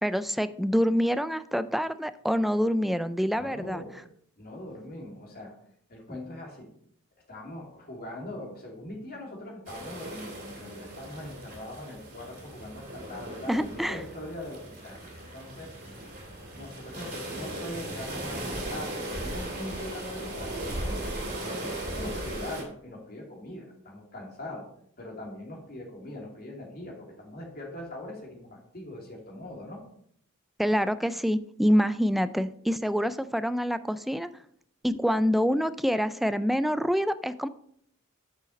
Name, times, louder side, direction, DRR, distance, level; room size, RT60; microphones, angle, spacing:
voice 1, 0.0-3.8 13.5-14.0 30.6-34.3 34.8-37.5, equal, ahead, 13 dB, 0.3 m, -26 dB
voice 2, 3.3-3.9 4.4-5.5 5.9-6.7 7.3-15.8 16.0-24.7 25.0-29.8, left 1 dB, 45° left, -1 dB, 2.7 m, -42 dB
sound 1, 9.7-22.6, right 1 dB, 40° right, 2.8 m, -37 dB
8.9 x 6.6 x 4.1 m, 0.66 s
head